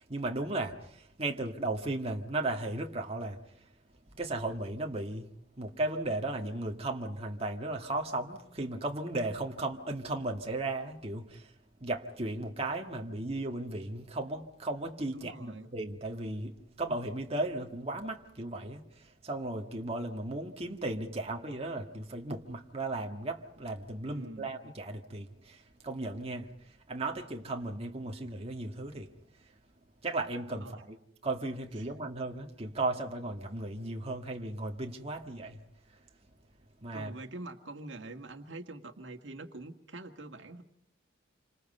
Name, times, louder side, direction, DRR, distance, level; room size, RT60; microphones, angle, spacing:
voice 1, 0.0-3.4 4.1-5.3 5.6-11.5 11.8-29.1 30.0-31.0 31.2-35.6 36.8-37.1, right 2 dB, 30° right, 1.8 m, -36 dB
voice 2, 15.1-15.7 24.1-24.5 30.6-30.8 31.8-31.9 36.9-40.6, right 2 dB, 80° right, 1.8 m, -45 dB
28.0 x 25.5 x 5.5 m
head